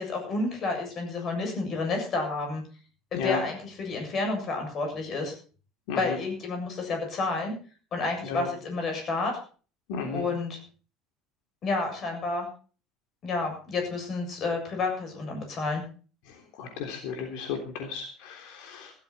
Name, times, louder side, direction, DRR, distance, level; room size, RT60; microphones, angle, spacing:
voice 1, 0.0-2.6 3.1-5.3 6.0-7.5 7.9-9.4 10.1-10.6 11.6-12.5 13.2-15.8, left 3 dB, 35° left, 3 dB, 7.4 m, -30 dB
voice 2, 9.9-10.2 16.6-18.9, left 6 dB, 75° left, 3 dB, 3.4 m, -33 dB
16.5 x 13.5 x 4.3 m, 0.39 s
cardioid pair, 160°, 0 cm